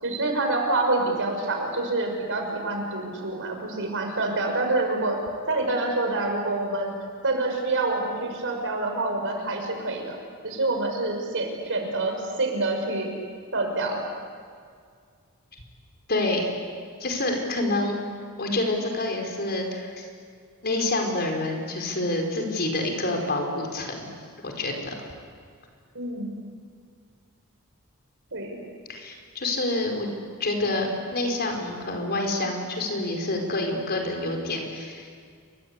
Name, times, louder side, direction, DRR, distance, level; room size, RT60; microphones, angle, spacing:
voice 1, 0.0-5.2 5.5-6.9 7.2-10.2 10.4-13.1 13.5-14.0 25.9-26.3 28.3-28.6, right 2 dB, 60° right, 3 dB, 6.2 m, -27 dB
voice 2, 16.1-16.5 17.0-18.0 18.4-20.1 20.6-24.1 24.4-24.9 28.9-30.1 30.4-35.1, left 2 dB, 45° left, 2 dB, 5.0 m, -27 dB
29.0 x 24.0 x 8.4 m, 2.1 s
head